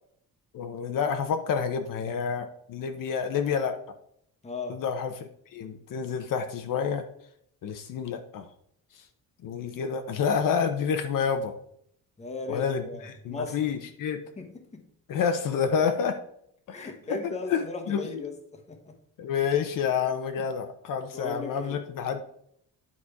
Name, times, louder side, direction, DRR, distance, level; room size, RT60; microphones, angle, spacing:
voice 1, 0.5-3.8 4.7-7.0 7.6-8.5 9.4-11.5 12.5-14.2 15.1-16.2 16.7-18.0 19.2-22.2, left 7 dB, 65° left, 7 dB, 0.8 m, -29 dB
voice 2, 4.4-4.8 12.2-13.6 14.4-14.8 16.7-18.9 20.4-20.5 21.1-21.8, left 3 dB, 20° left, 4 dB, 1.0 m, -37 dB
9.8 x 4.3 x 4.8 m, 0.69 s
cardioid pair, 160°, 35 cm